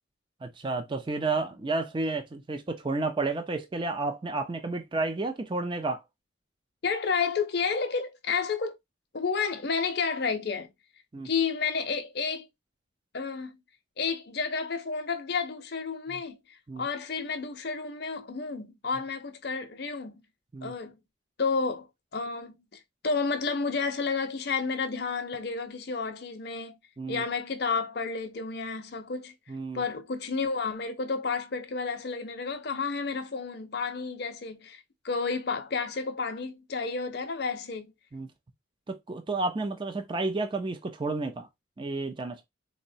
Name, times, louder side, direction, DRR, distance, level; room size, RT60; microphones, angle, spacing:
voice 1, 0.4-6.0 11.1-11.3 16.1-16.2 16.7-16.9 20.5-20.7 27.0-27.2 29.5-29.8 38.1-38.3 38.9-41.5 41.8-42.4, right 3 dB, 25° right, 0.4 m, -31 dB
voice 2, 6.8-8.8 9.1-10.7 11.2-12.5 13.1-13.5 14.0-20.2 20.6-21.0 21.4-21.9 22.1-22.6 23.0-26.8 27.1-29.3 29.7-37.9, left 5 dB, 55° left, 0.6 m, -31 dB
3.7 x 2.1 x 2.6 m
head